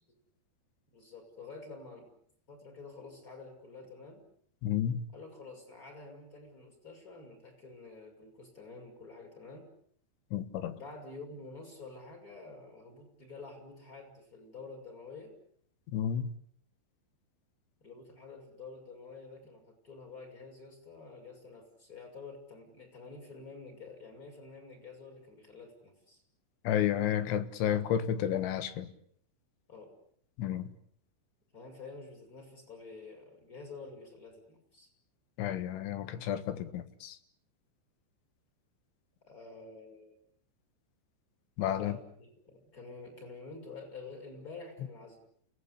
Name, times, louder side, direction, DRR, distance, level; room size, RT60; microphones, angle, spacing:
voice 1, 0.9-2.1 2.5-4.2 5.1-9.7 10.7-15.3 17.8-26.2 29.7-29.9 31.5-34.9 39.3-40.2 41.8-45.2, left 3 dB, 20° left, 3 dB, 6.4 m, -49 dB
voice 2, 4.6-5.0 10.3-10.8 15.9-16.3 26.7-28.9 30.4-30.7 35.4-37.2 41.6-42.0, left 10 dB, 85° left, 11 dB, 3.9 m, -31 dB
29.5 x 18.0 x 8.4 m, 0.65 s
omnidirectional pair, 5.3 m